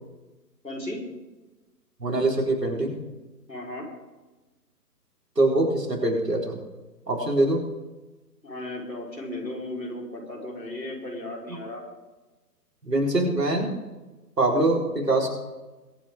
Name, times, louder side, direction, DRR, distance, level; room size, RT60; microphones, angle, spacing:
voice 1, 0.6-1.0 3.5-3.9 8.4-11.8, left 1 dB, 85° left, 0 dB, 4.8 m, -35 dB
voice 2, 2.0-3.0 5.4-6.6 7.1-7.6 12.8-13.8 14.4-15.3, right 2 dB, 75° right, -2 dB, 4.5 m, -23 dB
22.5 x 9.3 x 3.8 m, 1.2 s
figure-of-eight pair, 140°, 49 cm